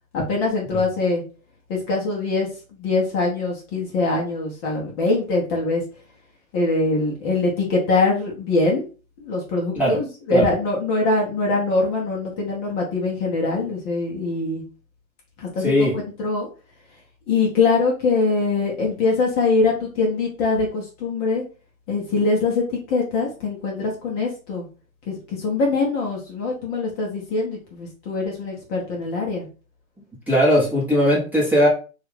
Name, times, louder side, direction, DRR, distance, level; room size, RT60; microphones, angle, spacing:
voice 1, 0.1-1.2 1.7-2.5 2.8-5.8 6.5-8.9 9.2-14.6 15.4-16.5 17.3-21.4 21.9-24.7 25.1-29.5, left 3 dB, 25° left, -2 dB, 0.7 m, -23 dB
voice 2, 15.6-15.9 30.3-31.7, equal, 5° right, -7 dB, 0.8 m, -18 dB
3.0 x 2.4 x 3.2 m, 0.35 s
hypercardioid pair, 130°, 41 cm